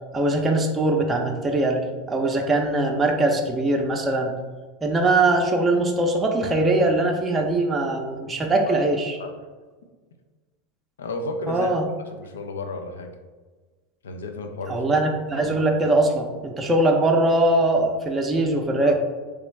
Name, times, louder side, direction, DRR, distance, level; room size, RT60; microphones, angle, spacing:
voice 1, 0.1-1.8 2.1-4.3 4.8-9.2 11.5-11.8 14.7-18.9, right 2 dB, 20° right, 1 dB, 0.5 m, -21 dB
voice 2, 11.0-11.7 12.1-13.1 14.0-14.8 18.8-18.9, left 2 dB, 80° left, 6 dB, 0.4 m, -32 dB
3.4 x 2.9 x 3.2 m, 1.3 s
hypercardioid pair, 90°, 0 cm